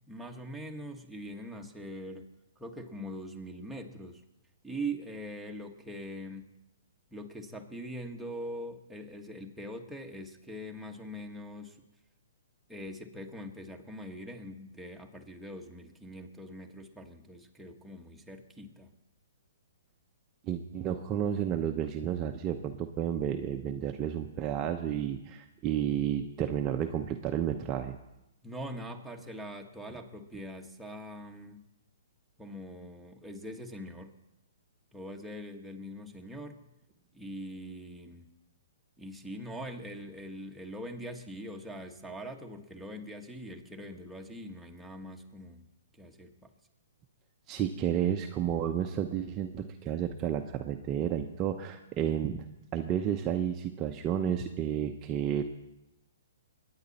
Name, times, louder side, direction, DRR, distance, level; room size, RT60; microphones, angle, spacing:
voice 1, 0.1-2.2 2.6-4.2 4.6-6.5 7.1-11.8 12.7-18.9 28.4-31.6 32.4-34.1 34.9-36.6 37.1-38.3 39.0-45.6 45.9-46.5, equal, ahead, 0 dB, 1.4 m, -42 dB
voice 2, 20.5-28.0 47.5-52.4 52.7-55.4, right 9 dB, 25° right, 5 dB, 0.8 m, -31 dB
23.0 x 9.7 x 4.2 m, 0.90 s
hypercardioid pair, 135°, 0 cm